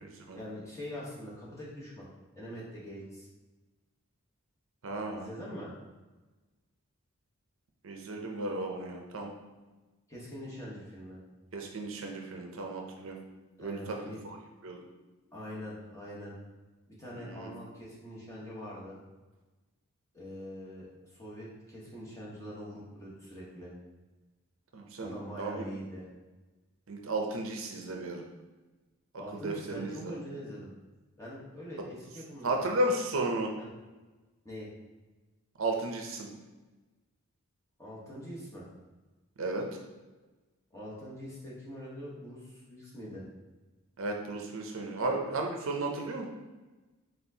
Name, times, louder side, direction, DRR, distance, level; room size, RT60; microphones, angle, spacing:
voice 1, 0.3-2.1 2.3-3.3 5.1-5.7 10.1-11.2 13.6-14.2 15.3-16.3 16.9-19.0 20.1-23.7 25.0-26.1 29.1-30.7 31.2-32.6 33.6-33.7 34.4-34.7 37.8-38.7 40.7-43.2, equal, 15° left, -7 dB, 1.0 m, -43 dB
voice 2, 4.8-5.2 7.8-9.3 11.5-13.2 13.6-14.4 14.6-14.8 17.1-17.5 24.7-25.7 26.9-28.2 29.3-30.2 32.4-33.5 35.6-36.3 39.4-39.7 44.0-46.3, right 2 dB, 65° right, 2 dB, 0.5 m, -34 dB
4.2 x 3.7 x 2.7 m, 1.2 s
head